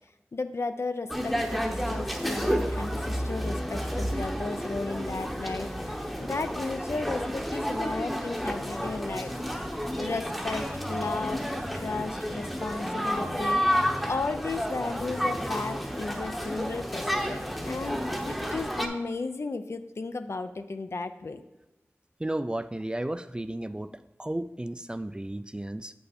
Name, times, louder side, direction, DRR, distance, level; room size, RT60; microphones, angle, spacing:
voice 1, 0.3-9.3 10.0-13.8 14.0-21.4, left 3 dB, 65° left, 9 dB, 0.5 m, -34 dB
sound 1, 1.1-18.9, equal, ahead, 0.8 m, -31 dB
voice 2, 22.2-23.9 24.2-25.9, right 1 dB, 20° right, 11 dB, 0.3 m, -33 dB
7.8 x 5.5 x 4.2 m, 0.96 s
wide cardioid pair, 55°, 5 cm